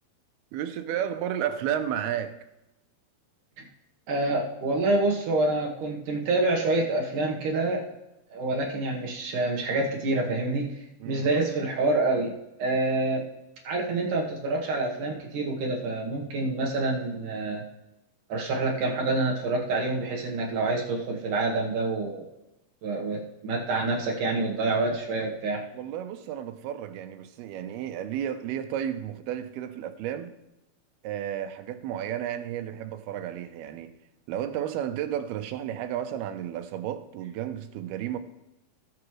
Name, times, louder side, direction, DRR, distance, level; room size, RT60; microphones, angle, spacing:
voice 1, 0.5-2.4 11.0-11.3 24.0-24.1 25.7-30.3 31.0-33.9 34.3-38.2, right 10 dB, 85° right, 2.7 m, -32 dB
voice 2, 4.1-7.8 8.3-10.7 11.1-12.3 12.6-13.3 13.6-17.6 18.3-22.3 22.8-25.6, right 2 dB, 65° right, 2.6 m, -27 dB
19.5 x 7.1 x 3.2 m
omnidirectional pair, 4.4 m